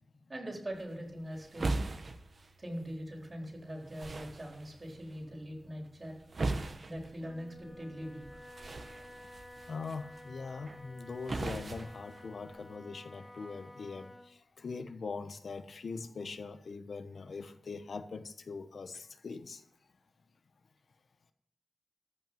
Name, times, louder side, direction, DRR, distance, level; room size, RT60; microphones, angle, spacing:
voice 1, 0.3-1.9 2.6-6.1 6.9-8.2, equal, 30° right, 1 dB, 4.1 m, -42 dB
sound 1, 0.7-12.8, right 2 dB, 55° right, 1.2 m, -41 dB
Wind instrument woodwind instrument, 7.1-14.4, left 1 dB, 10° left, 1.6 m, -52 dB
voice 2, 9.7-19.6, left 4 dB, 75° left, 9 dB, 1.1 m, -42 dB
14.5 x 5.9 x 9.1 m, 0.78 s
wide cardioid pair, 100°, 0 cm